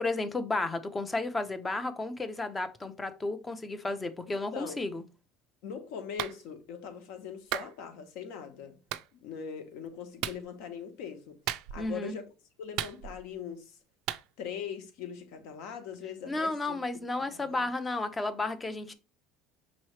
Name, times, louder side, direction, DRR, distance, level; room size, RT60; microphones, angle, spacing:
voice 1, 0.0-5.0 11.8-12.2 16.3-18.9, left 2 dB, 15° left, 0.5 m, -33 dB
voice 2, 5.6-8.8 9.2-12.2 12.6-13.8 14.4-16.8 17.2-17.6, left 7 dB, 70° left, 1.1 m, -41 dB
Clapping, 6.2-6.4 7.5-7.7 8.9-9.1 10.2-10.4 11.5-11.9 12.8-13.3 14.1-14.2, right 13 dB, 65° right, 0.3 m, -34 dB
5.5 x 3.0 x 3.1 m
cardioid pair, 160°, 0 cm